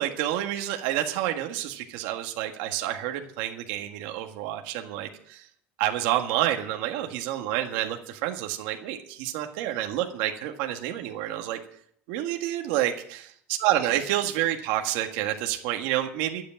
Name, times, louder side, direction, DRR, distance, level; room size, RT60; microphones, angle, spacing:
voice 1, 0.0-5.5 5.8-11.6 12.1-13.2 13.6-16.4, right 13 dB, 75° right, 3 dB, 1.7 m, -28 dB
12.0 x 8.3 x 8.8 m, 0.65 s
cardioid pair, 160°, 5 cm